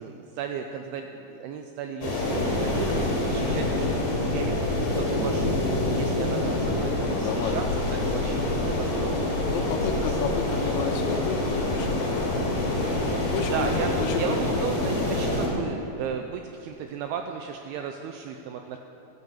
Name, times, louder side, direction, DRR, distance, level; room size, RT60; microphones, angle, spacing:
voice 1, 0.0-7.6 7.9-10.1 10.3-10.4 13.5-13.9 14.2-18.8, right 7 dB, 85° right, 5 dB, 2.2 m, -35 dB
sound 1, 2.0-15.5, left 2 dB, 45° left, 4.0 m, -26 dB
voice 2, 7.0-7.8 9.5-12.4 12.7-13.7 14.0-14.4, left 6 dB, 80° left, 5 dB, 3.3 m, -32 dB
16.0 x 9.8 x 7.2 m, 2.9 s
omnidirectional pair, 5.1 m